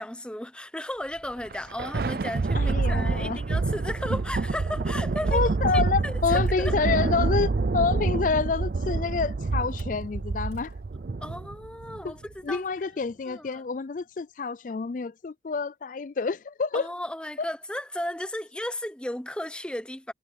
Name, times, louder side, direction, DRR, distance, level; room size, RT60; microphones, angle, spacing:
voice 1, 0.0-6.7 11.2-12.6 13.3-13.6 16.7-20.1, left 1 dB, 5° left, 0.8 m, -35 dB
Motor vehicle (road), 0.9-7.3 9.6-10.0 10.4-10.7, equal, 70° right, 6.0 m, -56 dB
Thunder, 1.4-12.1, right 3 dB, 55° right, 0.5 m, -27 dB
voice 2, 2.5-3.4 5.3-10.7 12.0-12.1 12.4-16.9 17.4-17.5, left 4 dB, 45° left, 0.4 m, -28 dB
head